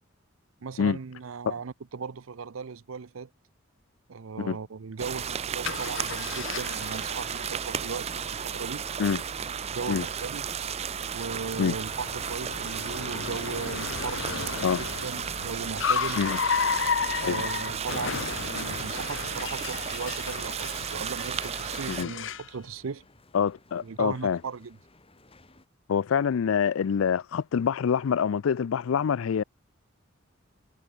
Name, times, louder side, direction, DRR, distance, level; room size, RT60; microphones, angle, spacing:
voice 1, 0.6-3.3 4.1-8.8 9.7-10.5 11.1-16.2 17.2-23.0 23.8-24.8, right 5 dB, 85° right, 0.6 m, -37 dB
sound 1, 5.0-22.0, right 8 dB, 30° right, 0.4 m, -34 dB
Car, 5.6-22.5, left 6 dB, 65° left, 1.2 m, -34 dB
sound 2, 10.0-25.7, left 2 dB, 30° left, 2.4 m, -56 dB
voice 2, 23.3-24.4 25.9-29.4, left 7 dB, 85° left, 0.4 m, -26 dB
head